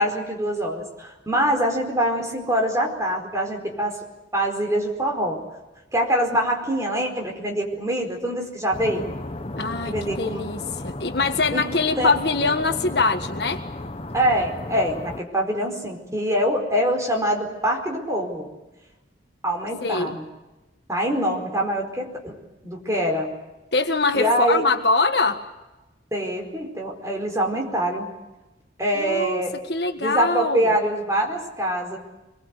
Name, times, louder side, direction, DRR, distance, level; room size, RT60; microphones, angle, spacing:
voice 1, 0.0-4.0 4.3-5.4 5.9-9.1 9.9-10.4 11.5-11.6 12.0-12.1 14.1-18.5 19.4-20.2 20.9-22.4 22.6-23.3 24.1-24.6 26.1-28.1 28.8-29.5 30.0-32.0, equal, 15° right, 2 dB, 4.7 m, -24 dB
sound 1, 8.7-15.2, left 1 dB, 30° left, 1.1 m, -34 dB
voice 2, 9.5-13.6 19.8-20.2 23.7-25.4 28.9-29.4 29.7-30.7, left 3 dB, 60° left, 6 dB, 1.6 m, -23 dB
24.5 x 22.5 x 8.2 m, 1.1 s
head